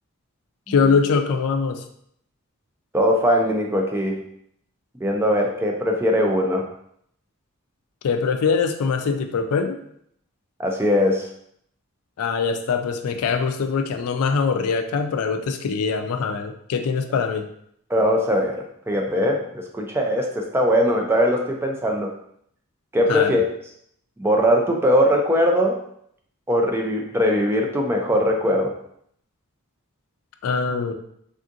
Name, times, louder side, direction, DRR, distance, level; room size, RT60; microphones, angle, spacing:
voice 1, 0.7-1.8 8.0-9.8 12.2-17.5 23.1-23.4 30.4-30.9, left 5 dB, 80° left, 7 dB, 0.3 m, -23 dB
voice 2, 2.9-4.2 5.0-6.7 10.6-11.3 17.9-22.1 22.9-23.5 24.2-25.8 26.5-28.8, equal, 10° right, 0 dB, 0.3 m, -20 dB
3.5 x 2.5 x 2.6 m, 0.69 s
head